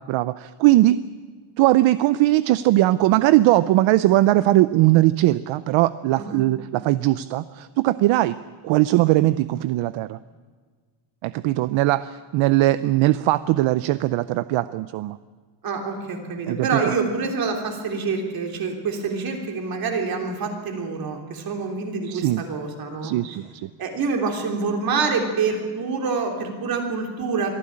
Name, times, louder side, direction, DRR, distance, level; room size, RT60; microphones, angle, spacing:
voice 1, 0.1-1.0 1.6-8.4 8.6-10.2 11.2-15.2 16.5-16.9 22.0-22.4 23.0-23.7, right 16 dB, 70° right, 15 dB, 0.6 m, -20 dB
voice 2, 15.6-23.1 23.8-27.5, right 4 dB, 45° right, 3 dB, 3.4 m, -26 dB
23.0 x 14.5 x 8.7 m, 1.5 s
cardioid pair, 170°, 48 cm